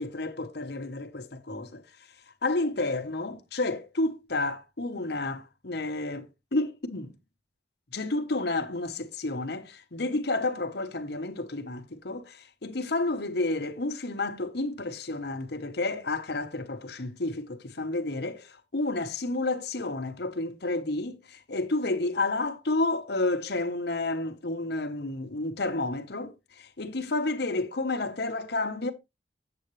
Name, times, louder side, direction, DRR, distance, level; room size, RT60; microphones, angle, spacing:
voice 1, 0.0-1.8 2.4-7.2 7.9-28.9, left 2 dB, 65° left, 1.0 m, -31 dB
7.9 x 7.7 x 3.1 m
head